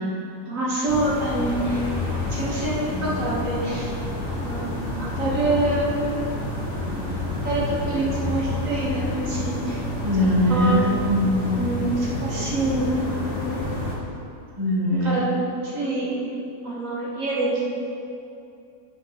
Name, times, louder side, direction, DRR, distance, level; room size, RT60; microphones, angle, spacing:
voice 1, 0.5-1.8 2.1-3.9 4.4-4.7 5.2-5.9 7.4-9.8 10.5-10.7 11.5-13.0 15.0-15.3 15.7-16.1 16.6-17.7, right 2 dB, 55° right, -5 dB, 1.7 m, -26 dB
sound 1, 0.9-14.0, left 2 dB, 50° left, 1.6 m, -29 dB
voice 2, 10.0-11.5 14.6-15.2, left 1 dB, 15° right, -5 dB, 1.2 m, -21 dB
6.1 x 6.1 x 5.8 m, 2.6 s
omnidirectional pair, 1.7 m